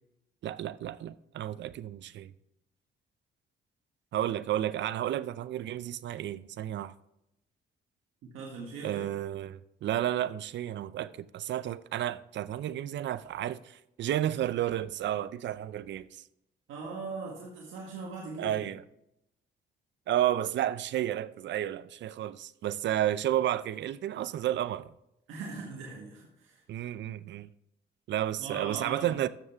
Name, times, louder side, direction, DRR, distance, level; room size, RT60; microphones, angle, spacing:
voice 1, 0.4-2.3 4.1-6.9 8.8-16.2 18.4-18.8 20.1-24.9 26.7-27.5 28.1-29.3, right 12 dB, 65° right, 0.5 m, -32 dB
voice 2, 8.2-9.1 16.7-18.7 25.3-26.6 28.4-29.3, right 4 dB, 90° right, 1.8 m, -40 dB
12.5 x 7.3 x 3.5 m
cardioid pair, 90°, 20 cm